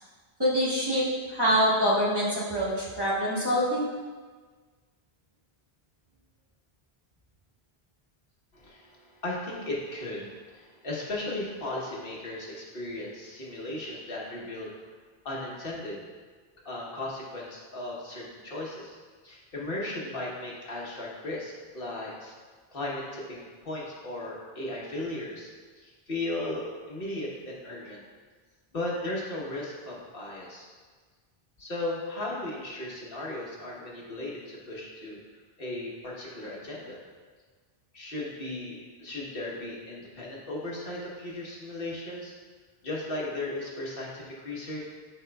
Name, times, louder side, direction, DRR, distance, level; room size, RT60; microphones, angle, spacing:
voice 1, 0.4-3.9, equal, 25° right, -8 dB, 1.4 m, -25 dB
voice 2, 8.5-14.7 15.2-16.0 16.6-19.0 19.2-22.3 22.7-25.5 25.8-28.0 28.7-30.7 31.6-35.2 35.6-37.0 37.9-42.3 42.8-44.9, left 1 dB, 65° left, -4 dB, 1.3 m, -36 dB
12.0 x 4.3 x 2.3 m, 1.5 s
omnidirectional pair, 1.0 m